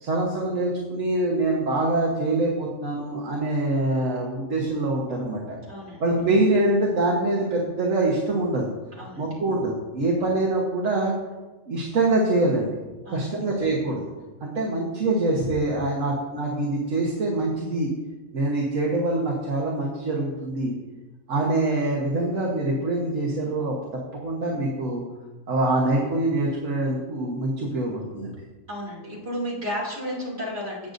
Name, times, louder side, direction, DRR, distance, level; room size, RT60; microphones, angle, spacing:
voice 1, 0.0-5.6 6.0-8.7 9.2-11.1 11.7-12.7 13.1-14.1 14.4-17.9 18.3-20.7 21.3-25.0 25.5-28.3, right 2 dB, 70° right, -2 dB, 1.6 m, -24 dB
voice 2, 5.7-6.0 9.0-9.4 13.0-13.4 28.7-30.9, equal, 50° right, -4 dB, 3.0 m, -33 dB
17.0 x 6.5 x 2.6 m, 1.2 s
omnidirectional pair, 1.4 m